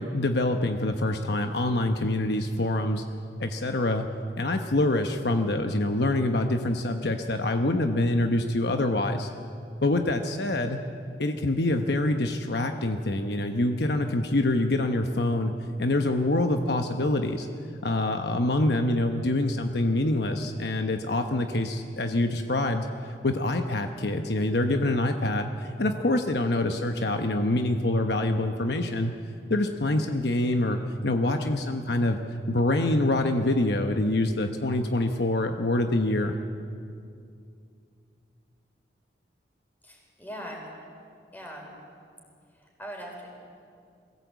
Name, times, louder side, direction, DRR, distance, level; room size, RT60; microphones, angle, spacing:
voice 1, 0.0-3.0 3.4-4.1 4.4-9.3 9.8-10.8 11.2-15.5 15.8-17.5 17.8-29.1 29.5-32.2 32.5-36.3, left 1 dB, 65° left, 5 dB, 1.0 m, -25 dB
voice 2, 39.8-40.6 41.3-41.7 42.8-43.3, equal, 10° left, -1 dB, 4.6 m, -40 dB
21.5 x 16.5 x 8.2 m, 2.4 s
head